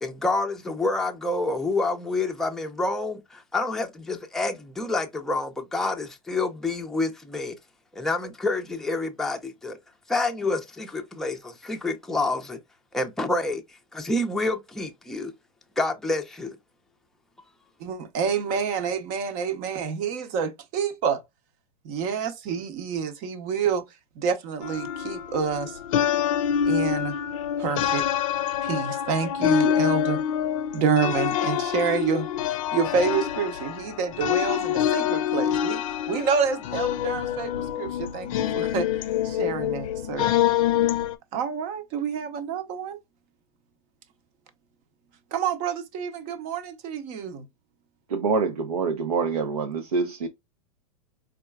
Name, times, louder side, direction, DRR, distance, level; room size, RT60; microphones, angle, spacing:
voice 1, 0.0-7.6 7.9-9.8 10.1-12.6 12.9-13.6 13.9-15.3 15.8-16.6, left 2 dB, ahead, 0.5 m, -28 dB
voice 2, 17.8-21.2 21.8-23.8 24.2-25.8 26.6-27.2 27.6-28.1 28.6-30.2 30.7-38.9 39.2-40.3 41.3-43.0 45.3-47.5, right 6 dB, 45° right, 0.7 m, -28 dB
sound 1, 24.6-41.2, left 10 dB, 65° left, 0.6 m, -26 dB
voice 3, 48.1-50.3, right 4 dB, 90° right, 0.6 m, -26 dB
4.3 x 2.3 x 2.2 m
hypercardioid pair, 105°, 19 cm